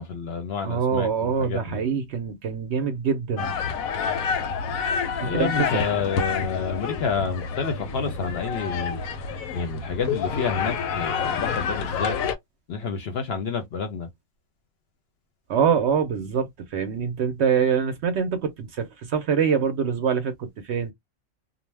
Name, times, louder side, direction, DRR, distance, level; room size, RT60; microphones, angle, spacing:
voice 1, 0.0-1.8 5.2-9.0 9.5-12.2 12.7-14.1, left 5 dB, 60° left, 0.8 m, -29 dB
voice 2, 0.6-3.5 5.2-5.7 15.5-20.9, right 7 dB, 65° right, 0.7 m, -24 dB
sound 1, 3.4-12.3, left 6 dB, 85° left, 1.0 m, -28 dB
2.5 x 2.0 x 3.2 m
omnidirectional pair, 1.4 m